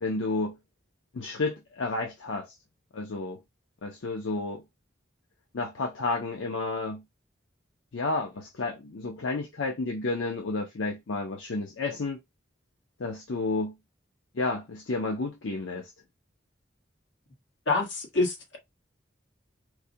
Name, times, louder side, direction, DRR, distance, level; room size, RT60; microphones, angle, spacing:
voice 1, 0.0-0.6 1.1-2.5 2.9-3.4 3.8-4.6 5.5-7.0 7.9-12.2 13.0-13.7 14.3-15.9, left 3 dB, 85° left, 0.6 m, -31 dB
voice 2, 17.7-18.6, left 3 dB, 70° left, 1.3 m, -26 dB
4.6 x 2.2 x 2.7 m
head